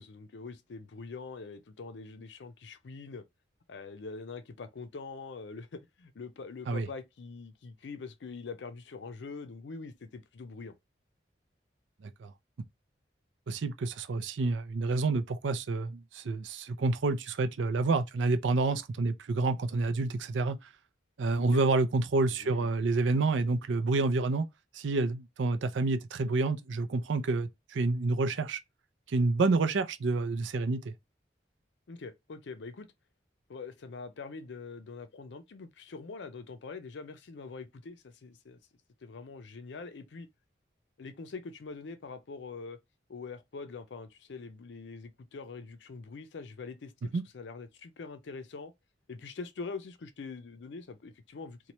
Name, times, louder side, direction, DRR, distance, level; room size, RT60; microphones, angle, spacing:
voice 1, 0.0-3.2 3.7-10.7 21.4-21.6 22.4-22.7 23.1-23.2 31.9-32.9 33.5-38.6 39.0-40.3 41.0-42.8 43.1-48.7 49.1-51.7, left 4 dB, 75° left, 0.5 m, -44 dB
voice 2, 13.5-20.6 21.2-24.5 24.7-28.6 29.1-30.9 47.1-47.2, right 3 dB, 85° right, 0.5 m, -28 dB
2.9 x 2.2 x 4.1 m
head